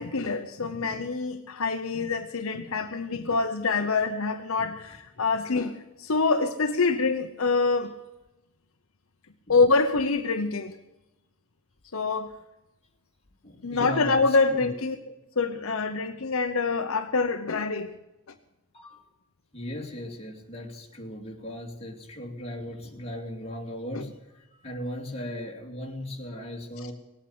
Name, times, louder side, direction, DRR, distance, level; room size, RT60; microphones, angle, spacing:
voice 1, 0.0-7.9 9.5-10.8 11.9-12.3 13.6-17.9 23.9-24.0, left 4 dB, 65° left, 0.9 m, -26 dB
voice 2, 13.4-14.7 18.7-19.0 19.5-26.9, equal, 30° left, 2.8 m, -37 dB
19.0 x 8.9 x 7.9 m
head